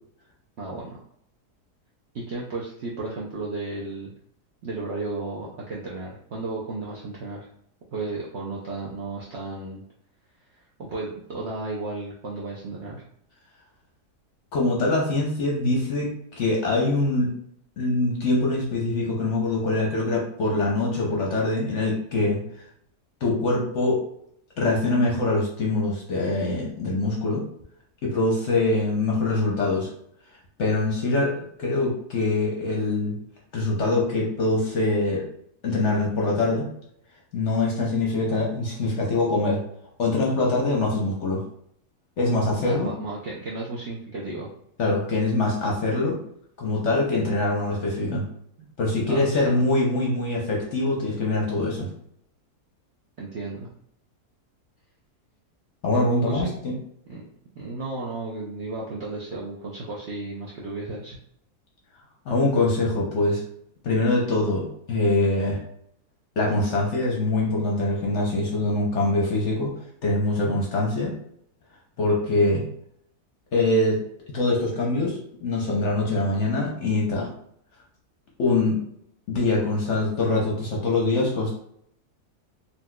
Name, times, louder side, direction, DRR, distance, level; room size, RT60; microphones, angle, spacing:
voice 1, 0.6-1.0 2.1-4.1 4.6-7.5 7.9-9.8 10.5-13.1 42.6-44.5 49.1-49.6 53.2-53.7 55.9-56.6 57.1-57.2 57.5-61.2, right 3 dB, 70° right, -4 dB, 0.6 m, -34 dB
voice 2, 14.5-17.3 17.8-22.4 23.2-24.0 24.6-27.4 28.0-29.9 30.6-33.2 33.5-35.2 35.6-36.7 37.3-39.6 40.0-41.4 42.2-42.9 44.8-46.2 46.6-48.2 48.8-51.9 55.8-56.7 62.3-63.4 63.8-65.6 66.4-69.7 70.0-71.1 72.0-72.6 73.5-74.0 74.3-77.3 78.4-78.8 79.3-81.5, left 2 dB, 60° left, -2 dB, 0.8 m, -23 dB
4.0 x 2.6 x 2.2 m, 0.70 s
omnidirectional pair, 1.7 m